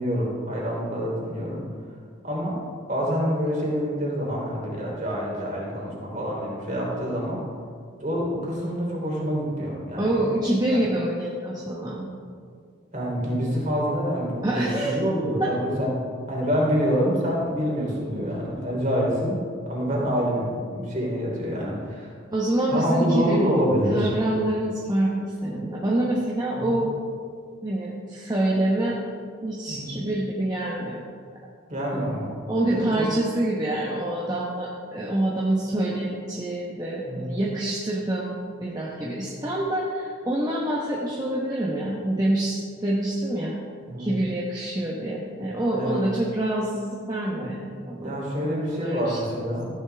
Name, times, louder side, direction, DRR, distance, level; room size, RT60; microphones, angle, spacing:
voice 1, 0.0-1.6 2.2-2.6 2.9-7.4 8.0-10.1 10.7-10.8 12.9-15.9 16.3-19.4 19.6-22.1 22.7-24.1 26.6-26.8 29.7-30.0 31.7-32.4 32.7-33.1 37.1-37.4 43.9-44.1 45.7-46.1 48.0-49.7, equal, 35° right, -3 dB, 3.2 m, -26 dB
voice 2, 10.0-12.2 14.4-15.0 15.4-15.5 22.3-23.5 23.9-27.0 27.6-29.0 29.4-31.0 32.5-43.5 44.0-49.5, right 1 dB, 20° right, -4 dB, 1.1 m, -26 dB
14.5 x 10.5 x 3.4 m, 2.1 s
head